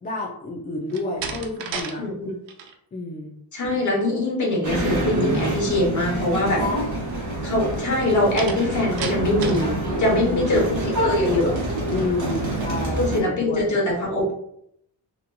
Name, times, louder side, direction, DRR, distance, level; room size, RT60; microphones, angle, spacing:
voice 1, 0.0-2.0 2.9-3.3 6.5-6.8 10.1-10.7 11.9-13.6, left 2 dB, 20° left, -2 dB, 0.3 m, -29 dB
Slam, 0.9-2.0 2.3-2.7 8.4-9.7, right 6 dB, 85° right, 0.5 m, -32 dB
voice 2, 2.0-2.3 3.5-6.6 7.4-11.5 13.0-14.3, left 1 dB, 45° left, -2 dB, 1.0 m, -23 dB
sound 1, 4.6-13.2, right 1 dB, 45° right, 0.9 m, -27 dB
2.9 x 2.6 x 2.2 m, 0.73 s
wide cardioid pair, 135°, 43 cm